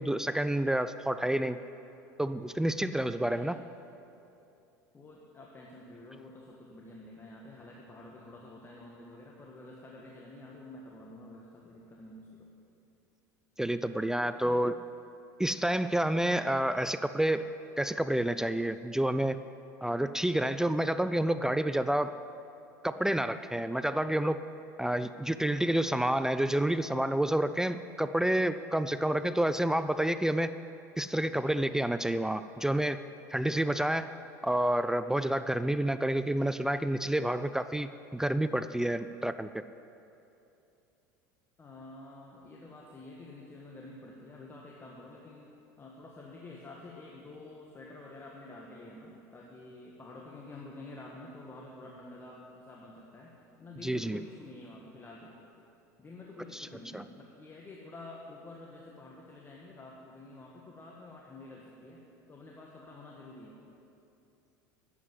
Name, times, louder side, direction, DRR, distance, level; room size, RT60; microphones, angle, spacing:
voice 1, 0.0-1.6 2.2-3.6 13.6-14.8 15.4-17.5 17.8-19.4 19.8-22.2 22.8-24.4 24.8-30.5 31.0-33.0 33.3-34.1 34.4-39.5 53.8-54.2 56.5-56.7 56.9-57.0, right 1 dB, 5° right, 12 dB, 0.4 m, -29 dB
voice 2, 3.2-3.5 4.9-12.5 14.2-14.6 41.6-45.5 45.8-55.3 56.0-62.0 62.3-63.6, left 2 dB, 25° left, -2 dB, 1.6 m, -49 dB
11.0 x 8.2 x 7.8 m, 2.8 s
hypercardioid pair, 85°, 10 cm